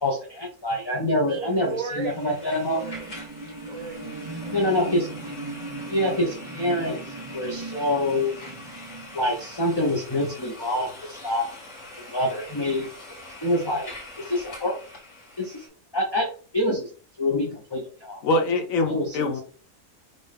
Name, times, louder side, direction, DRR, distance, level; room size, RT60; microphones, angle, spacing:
voice 1, 0.0-2.8 4.5-5.1 5.8-7.0 7.3-8.3 9.1-11.5 11.9-12.9 13.4-13.9 14.2-14.8 15.4-15.6 15.9-16.3 16.5-16.9 17.2-18.2 18.8-19.3, left 1 dB, 20° left, -1 dB, 0.8 m, -26 dB
voice 2, 1.0-2.4 2.7-3.2 3.7-4.7, right 6 dB, 85° right, 6 dB, 1.2 m, -37 dB
sound 1, 1.5-15.7, left 2 dB, 60° left, 1.8 m, -43 dB
sound 2, 2.6-10.3 10.8-10.9, right 3 dB, 25° right, 0.6 m, -39 dB
voice 3, 18.2-19.4, left 2 dB, 80° left, 6 dB, 1.2 m, -24 dB
5.3 x 2.6 x 3.5 m, 0.40 s
omnidirectional pair, 1.4 m